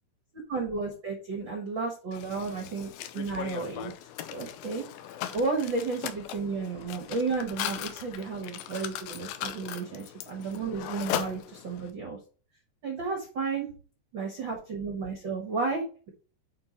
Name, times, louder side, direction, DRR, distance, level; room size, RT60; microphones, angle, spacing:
voice 1, 0.5-3.9 4.3-4.8 5.3-12.2 12.8-13.7 14.1-16.1, right 4 dB, 85° right, 3 dB, 1.0 m, -32 dB
Mechanisms, 2.1-11.9, left 11 dB, 85° left, 2.3 m, -38 dB
8.7 x 3.2 x 4.2 m, 0.38 s
omnidirectional pair, 4.1 m